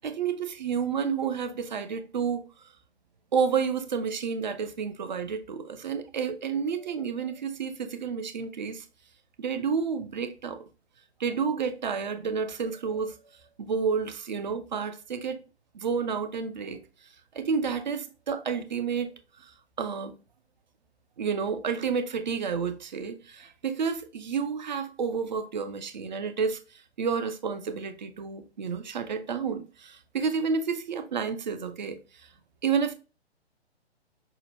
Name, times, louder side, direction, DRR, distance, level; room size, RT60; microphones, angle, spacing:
voice 1, 0.0-2.4 3.3-8.9 9.4-10.6 11.2-13.1 13.6-15.4 15.7-16.8 17.3-19.1 19.4-19.5 19.8-20.1 21.2-26.6 27.0-32.0 32.6-32.9, right 6 dB, 45° right, 0.5 m, -30 dB
5.6 x 2.1 x 2.7 m
figure-of-eight pair, 125°, 33 cm